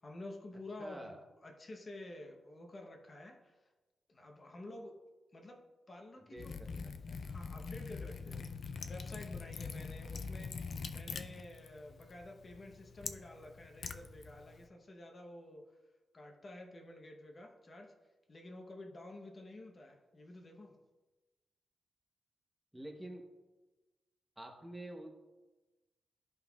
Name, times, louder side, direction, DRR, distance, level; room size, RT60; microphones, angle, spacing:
voice 1, 0.0-1.2 1.4-3.7 4.1-5.0 5.3-6.5 7.1-10.6 10.9-15.7 16.1-17.9 18.3-20.7, left 1 dB, 30° left, 2 dB, 0.8 m, -50 dB
voice 2, 0.8-1.2 6.2-7.2 22.7-23.2 24.4-25.1, right 1 dB, 10° right, 2 dB, 0.8 m, -48 dB
Liquid, 6.4-14.7, left 5 dB, 50° left, 0.4 m, -44 dB
13.0 x 5.3 x 2.3 m, 1.2 s
wide cardioid pair, 160°, 0 cm